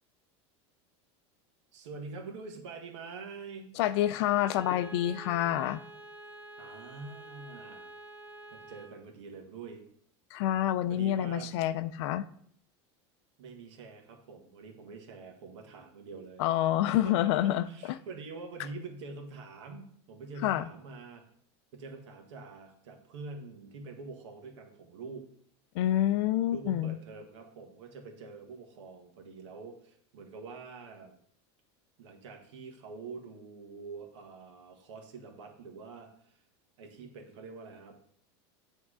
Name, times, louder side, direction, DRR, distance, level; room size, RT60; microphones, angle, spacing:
voice 1, 1.7-3.7 6.6-7.9 8.5-9.8 10.9-11.5 13.4-16.4 16.8-17.3 17.7-21.2 21.7-25.3 26.5-31.1 32.0-36.4 36.8-38.0, right 4 dB, 80° right, 4 dB, 1.6 m, -45 dB
voice 2, 3.8-5.8 10.3-12.2 16.4-18.0 20.4-20.6 25.7-26.9, left 12 dB, 70° left, 13 dB, 0.4 m, -28 dB
Bowed string instrument, 3.8-9.0, right 1 dB, 15° right, 2.0 m, -48 dB
7.9 x 3.6 x 4.9 m, 0.64 s
supercardioid pair, 130°, 15 cm